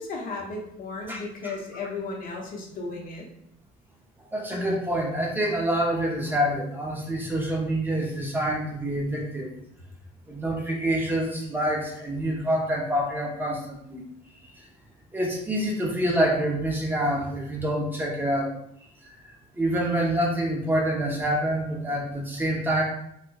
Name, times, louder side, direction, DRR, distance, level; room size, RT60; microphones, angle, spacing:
voice 1, 0.0-3.3, left 3 dB, 55° left, 0 dB, 0.8 m, -35 dB
voice 2, 1.1-1.5 4.3-9.5 10.3-14.0 14.6-14.7 15.1-18.5 19.6-22.8, right 1 dB, 10° right, -2 dB, 0.7 m, -26 dB
4.3 x 2.2 x 2.2 m, 0.75 s
cardioid pair, 110°, 17 cm